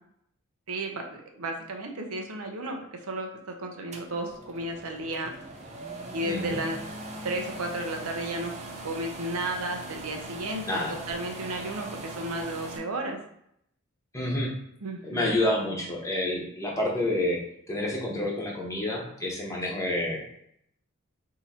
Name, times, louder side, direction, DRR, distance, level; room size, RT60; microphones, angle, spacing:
voice 1, 0.7-5.3 6.1-6.8 7.2-8.5 8.8-10.8 11.1-13.2 14.8-15.4, right 1 dB, 80° right, 3 dB, 0.7 m, -33 dB
sound 1, 3.9-12.8, right 2 dB, 30° right, 0.6 m, -40 dB
voice 2, 6.2-6.6 10.7-11.0 14.1-14.5 15.0-17.4 17.7-20.3, left 1 dB, 15° left, -2 dB, 1.0 m, -28 dB
3.7 x 2.8 x 4.2 m, 0.73 s
head